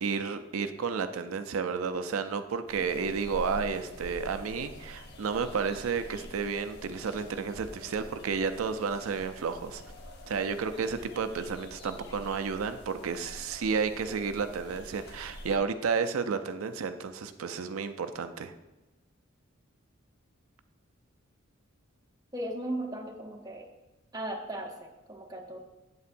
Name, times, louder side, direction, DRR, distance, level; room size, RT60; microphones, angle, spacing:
voice 1, 0.0-9.8 10.3-18.5, right 5 dB, 90° right, 9 dB, 0.4 m, -32 dB
sound 1, 2.7-15.6, left 1 dB, 50° left, 1.0 m, -47 dB
voice 2, 22.3-23.7 24.1-25.6, right 1 dB, 20° right, 1 dB, 0.8 m, -37 dB
8.2 x 7.9 x 2.6 m, 1.0 s
head